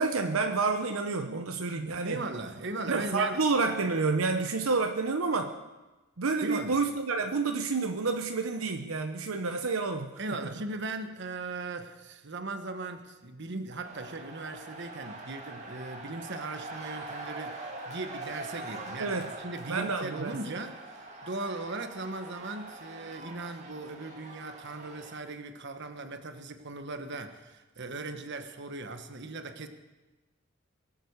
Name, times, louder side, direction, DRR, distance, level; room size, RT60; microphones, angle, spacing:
voice 1, 0.0-2.2 2.9-5.5 6.2-10.1 19.0-19.3 19.7-20.4, right 4 dB, 75° right, 5 dB, 0.9 m, -29 dB
voice 2, 2.0-3.4 6.4-6.8 10.2-29.7, right 2 dB, 55° right, 8 dB, 1.2 m, -38 dB
sound 1, 13.8-25.2, right 2 dB, 35° right, 2.1 m, -43 dB
22.5 x 7.8 x 6.6 m, 1.1 s
head